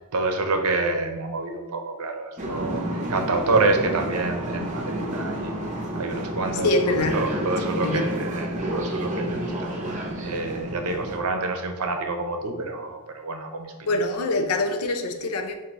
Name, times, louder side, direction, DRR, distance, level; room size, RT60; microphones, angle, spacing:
voice 1, 0.1-2.8 3.1-5.5 5.9-13.7, right 3 dB, 75° right, 0.6 m, -27 dB
sound 1, 2.4-11.2, right 1 dB, 35° right, 0.7 m, -30 dB
voice 2, 6.6-8.2 13.8-15.5, left 2 dB, 75° left, 0.5 m, -25 dB
3.9 x 2.6 x 4.6 m
head